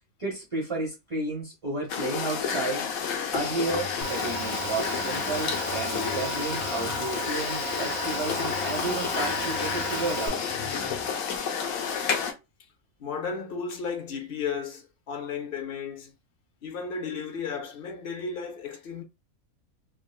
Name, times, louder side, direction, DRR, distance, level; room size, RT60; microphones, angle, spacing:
voice 1, 0.2-10.4, right 3 dB, 30° right, 0.7 m, -32 dB
sound 1, 1.9-12.3, left 6 dB, 90° left, 1.1 m, -30 dB
Guitar, 3.3-11.4, left 4 dB, 45° left, 1.2 m, -39 dB
Motor vehicle (road) / Engine, 4.0-10.3, right 4 dB, 80° right, 1.5 m, -36 dB
voice 2, 13.0-16.1 16.6-19.0, left 5 dB, 70° left, 0.5 m, -34 dB
3.7 x 2.1 x 2.3 m
omnidirectional pair, 1.5 m